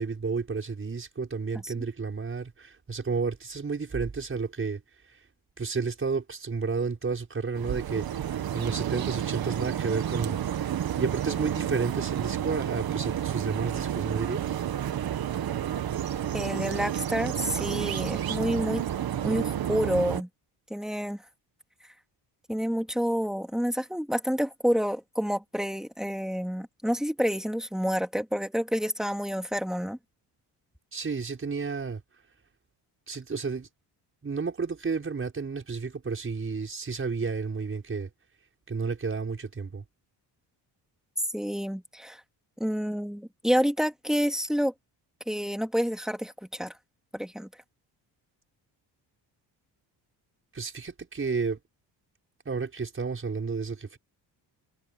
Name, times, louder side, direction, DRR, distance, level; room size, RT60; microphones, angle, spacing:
voice 1, 0.0-4.8 5.1-5.2 5.6-10.4 11.0-14.6 30.9-32.0 33.1-33.7 34.2-38.1 38.7-39.8 50.5-51.6 52.4-54.0, right 4 dB, 30° right, 6.3 m, -31 dB
sound 1, 7.6-20.2, right 10 dB, 55° right, 1.9 m, -30 dB
voice 2, 16.3-18.8 19.2-20.3 20.7-21.2 22.5-30.0 41.3-42.2 42.6-44.7 45.3-46.7 47.1-47.5, equal, ahead, 2.7 m, -28 dB
cardioid pair, 110°, 43 cm